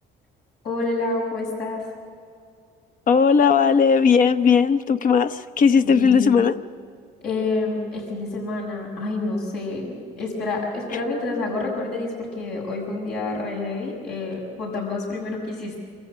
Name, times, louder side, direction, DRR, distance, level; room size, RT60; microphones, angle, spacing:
voice 1, 0.6-1.8 5.8-6.3 7.2-15.8, left 2 dB, 75° left, -1 dB, 6.5 m, -28 dB
voice 2, 3.1-6.5, left 6 dB, 55° left, 11 dB, 0.8 m, -17 dB
27.0 x 14.5 x 8.3 m, 2.3 s
cardioid pair, 110°, 17 cm